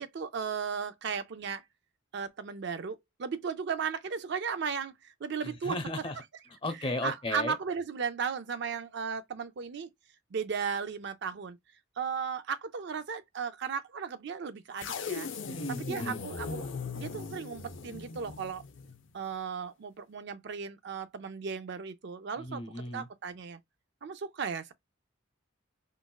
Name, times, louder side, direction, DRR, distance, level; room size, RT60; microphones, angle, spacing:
voice 1, 0.0-1.6 2.1-5.8 7.0-9.9 10.3-11.6 12.0-15.3 15.7-16.7 16.9-18.6 19.1-22.6 22.9-23.6 24.0-24.7, right 6 dB, 60° right, 0.4 m, -35 dB
voice 2, 5.4-6.2 6.6-7.5 15.4-16.2 22.4-23.1, left 1 dB, 25° left, 0.7 m, -35 dB
sound 1, 14.8-19.1, left 5 dB, 65° left, 0.6 m, -39 dB
3.9 x 2.3 x 2.3 m
head